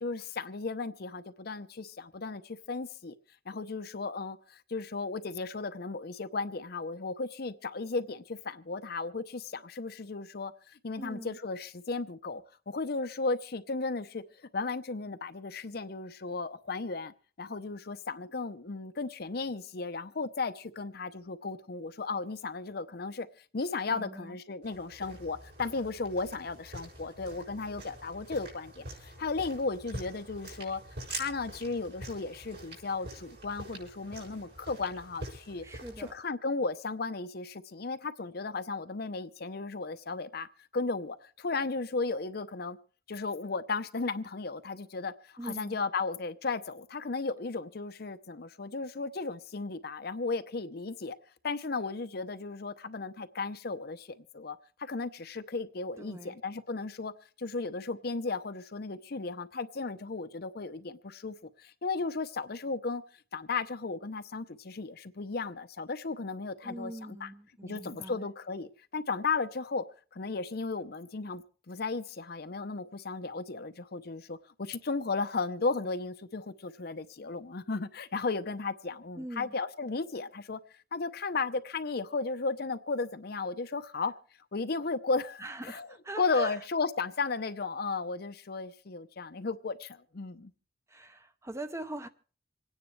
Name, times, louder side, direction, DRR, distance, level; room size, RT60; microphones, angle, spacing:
voice 1, 0.0-3.1 3.5-14.2 14.5-23.3 23.5-30.8 31.1-35.6 36.0-40.5 40.7-42.8 43.1-51.2 51.4-57.1 57.4-63.0 63.3-67.3 67.6-69.8 70.1-80.6 80.9-84.1 84.5-85.9 86.2-90.5, left 4 dB, 55° left, 0.7 m, -35 dB
voice 2, 11.0-11.4 23.9-24.4 35.6-36.1 45.4-45.8 56.0-56.4 66.6-68.3 79.2-79.5 85.4-86.6 90.9-92.1, right 1 dB, 15° right, 0.8 m, -42 dB
sound 1, 24.6-36.1, right 1 dB, 60° right, 6.5 m, -45 dB
27.0 x 9.7 x 3.3 m
head